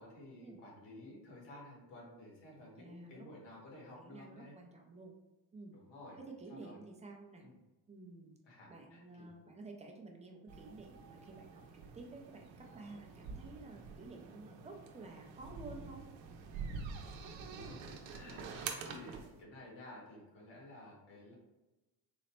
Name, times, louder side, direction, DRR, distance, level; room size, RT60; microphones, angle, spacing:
voice 1, 0.0-4.5 5.7-6.2 6.5-6.8 7.4-7.6 8.4-9.3 17.4-21.3, left 1 dB, 70° left, -4 dB, 1.4 m, -53 dB
voice 2, 2.8-3.3 4.0-5.2 5.5-5.7 6.2-7.4 7.9-8.3 8.7-16.1, right 3 dB, 15° right, 1 dB, 0.4 m, -52 dB
sound 1, 10.5-19.4, right 5 dB, 85° right, 0.7 m, -47 dB
3.9 x 2.1 x 4.3 m, 1.1 s
cardioid pair, 150°, 44 cm